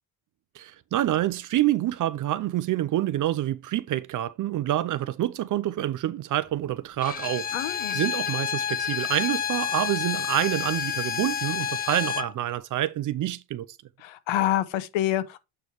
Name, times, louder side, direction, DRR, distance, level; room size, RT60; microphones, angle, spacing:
voice 1, 0.5-7.5 7.9-13.7, right 13 dB, 40° right, 0.5 m, -27 dB
Bowed string instrument, 7.0-12.3, left 8 dB, 20° left, 0.5 m, -29 dB
voice 2, 7.5-8.0 14.0-15.4, left 13 dB, 70° left, 1.1 m, -27 dB
8.5 x 3.4 x 4.5 m
cardioid pair, 130°, 49 cm